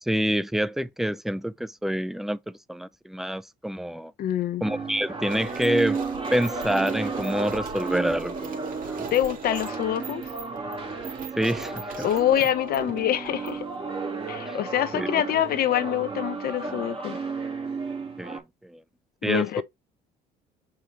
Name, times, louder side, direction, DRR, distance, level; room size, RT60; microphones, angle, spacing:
voice 1, 0.0-4.1 4.6-6.0 6.3-8.4 8.9-9.0 11.4-12.1 14.5-14.6 14.9-15.1 18.2-18.8 19.2-19.6, equal, ahead, 0.5 m, -27 dB
voice 2, 4.2-4.6 9.1-10.2 12.0-13.7 14.3-17.2 19.3-19.6, left 11 dB, 65° left, 1.1 m, -25 dB
sound 1, 4.6-18.4, right 4 dB, 30° right, 2.6 m, -33 dB
sound 2, 5.3-13.8, right 5 dB, 55° right, 2.1 m, -39 dB
7.1 x 5.1 x 3.2 m
cardioid pair, 110°, 17 cm